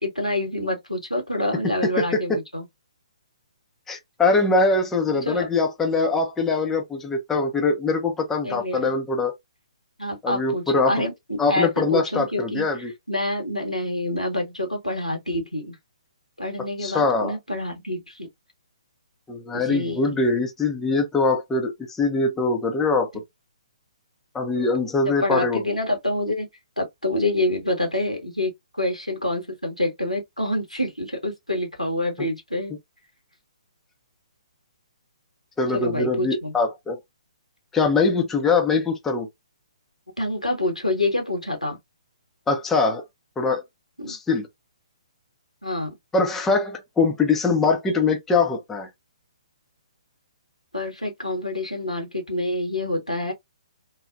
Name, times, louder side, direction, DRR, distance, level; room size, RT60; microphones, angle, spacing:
voice 1, 0.0-2.7 5.1-5.5 8.4-9.0 10.0-12.7 13.1-15.7 16.4-18.3 19.5-20.2 24.5-24.8 25.0-26.5 26.8-32.7 35.7-36.5 40.2-41.8 44.0-44.2 45.6-45.9 50.7-53.3, left 1 dB, 90° left, 1.3 m, -27 dB
voice 2, 1.8-2.2 3.9-9.3 10.2-10.9 11.4-12.9 16.8-17.3 19.3-23.1 24.3-25.6 35.6-37.0 37.7-39.3 42.5-43.0 43.4-43.6 44.1-44.5 46.1-48.9, left 3 dB, 10° left, 0.5 m, -22 dB
3.1 x 2.1 x 2.5 m
figure-of-eight pair, 130°, 4 cm